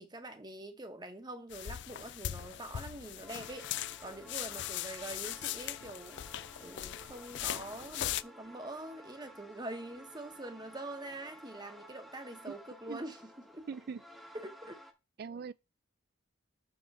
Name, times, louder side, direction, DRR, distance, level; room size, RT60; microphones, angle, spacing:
voice 1, 0.0-6.2 6.6-13.6 14.3-14.8, right 2 dB, 20° right, 1.0 m, -45 dB
sound 1, 1.5-8.2, left 12 dB, 60° left, 0.3 m, -40 dB
sound 2, 3.0-14.9, equal, ahead, 0.9 m, -54 dB
voice 2, 13.7-14.0 15.2-15.5, right 5 dB, 50° right, 0.3 m, -40 dB
6.5 x 5.6 x 4.1 m
head